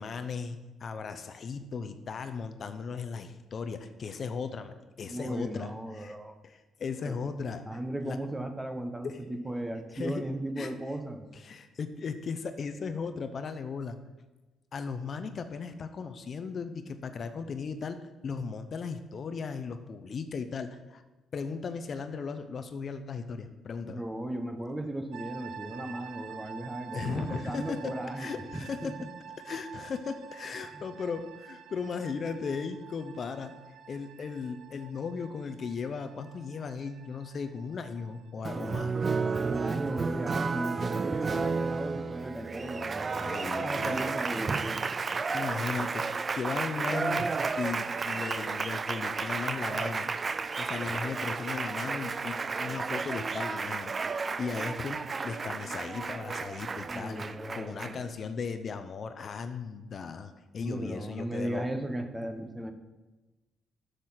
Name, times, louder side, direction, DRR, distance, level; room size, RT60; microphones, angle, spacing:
voice 1, 0.0-6.1 6.4-8.2 9.0-9.2 9.9-10.2 10.6-10.7 11.3-14.0 14.7-18.0 18.2-21.0 21.3-24.0 26.9-28.9 29.4-33.5 33.9-38.9 43.0-44.0 45.3-46.1 46.4-47.3 47.6-50.1 50.6-53.9 54.4-61.7, left 5 dB, 50° left, 9 dB, 0.7 m, -37 dB
voice 2, 5.0-6.4 7.0-7.2 7.6-11.3 23.8-28.4 28.8-28.9 30.7-30.8 38.5-44.9 56.9-58.0 60.6-62.7, right 1 dB, 10° right, 7 dB, 1.0 m, -36 dB
sound 1, 25.1-40.1, right 8 dB, 90° right, 0.6 m, -48 dB
Applause, 38.4-58.1, right 4 dB, 35° right, 0.4 m, -32 dB
7.6 x 6.6 x 5.8 m, 1.1 s
cardioid pair, 90°, 0 cm